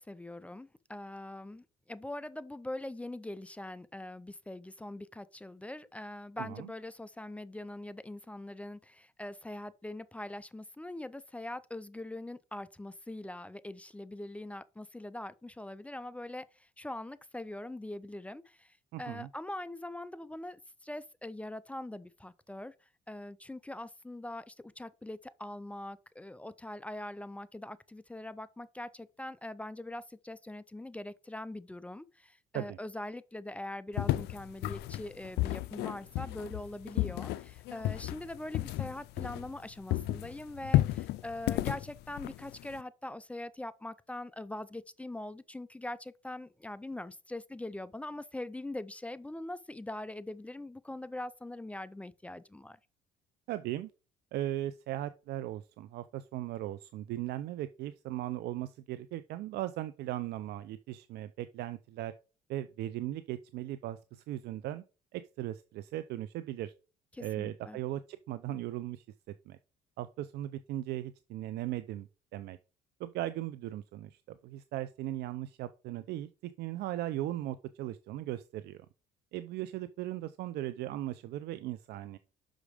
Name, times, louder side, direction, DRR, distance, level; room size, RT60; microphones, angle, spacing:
voice 1, 0.0-22.7 23.1-52.8 67.1-67.8, left 1 dB, 10° left, 0.4 m, -42 dB
voice 2, 6.4-6.7 18.9-19.3 32.5-32.8 53.5-53.9 54.3-62.1 62.5-64.8 65.1-66.7 67.2-69.0 69.5-69.6 70.0-72.6 73.0-78.8 79.3-82.2, right 14 dB, 75° right, 0.5 m, -38 dB
sound 1, 34.0-39.6 39.9-42.8, left 16 dB, 80° left, 0.4 m, -32 dB
6.1 x 5.1 x 4.9 m
cardioid pair, 110°, 17 cm